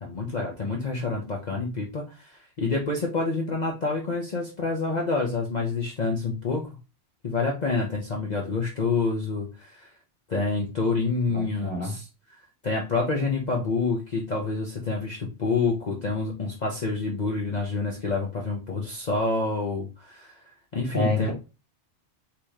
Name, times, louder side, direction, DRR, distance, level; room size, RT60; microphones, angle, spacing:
voice 1, 0.0-6.7 7.2-9.9 10.3-12.0 12.3-20.4 20.7-21.3, left 3 dB, 40° left, 0.9 m, -28 dB
voice 2, 11.3-12.0 20.9-21.3, left 2 dB, 10° right, 1.7 m, -28 dB
4.7 x 3.0 x 3.6 m
omnidirectional pair, 1.2 m